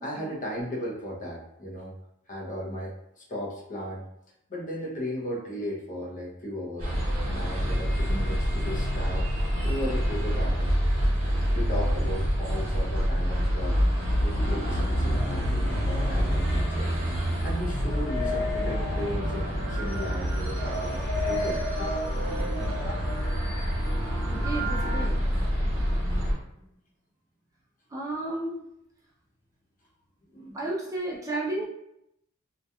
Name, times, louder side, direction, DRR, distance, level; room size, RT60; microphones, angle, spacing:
voice 1, 0.0-1.9 2.3-4.0 4.5-6.9 7.2-9.3 9.6-10.7 11.5-16.9 17.4-21.9 30.3-30.6, equal, 40° left, -3 dB, 0.6 m, -36 dB
sound 1, 6.8-26.3, equal, 75° right, 1.1 m, -27 dB
sound 2, 14.4-25.0, left 1 dB, 10° left, 0.9 m, -36 dB
voice 2, 24.3-25.3 27.9-28.6 30.5-31.7, right 2 dB, 15° right, -4 dB, 0.4 m, -32 dB
2.7 x 2.3 x 2.2 m, 0.80 s
head